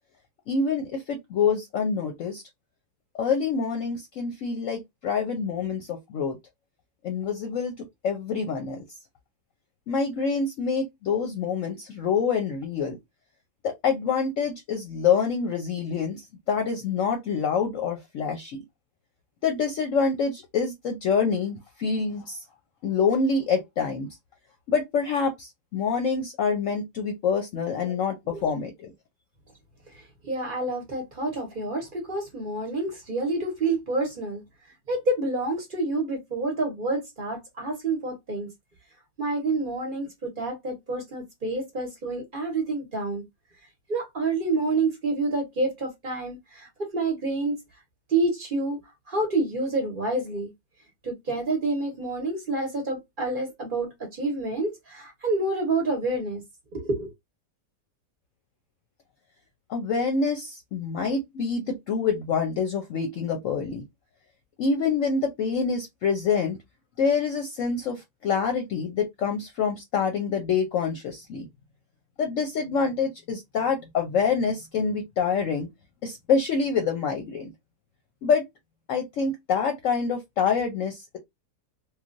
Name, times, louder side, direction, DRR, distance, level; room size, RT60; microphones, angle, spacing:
voice 1, 0.5-2.4 3.1-6.4 7.0-8.8 9.9-13.0 13.6-18.6 19.4-22.4 22.8-24.1 24.7-28.9 59.7-63.8 64.6-66.6 67.0-71.5 72.2-75.7 76.0-77.5 78.2-78.4 78.9-81.2, left 5 dB, 65° left, 0.9 m, -26 dB
voice 2, 29.9-34.4 34.9-38.5 39.2-43.2 43.9-47.6 48.1-48.8 49.1-50.5 51.0-56.4 56.7-57.1, right 2 dB, 40° right, 1.0 m, -28 dB
3.2 x 2.3 x 2.5 m
omnidirectional pair, 1.7 m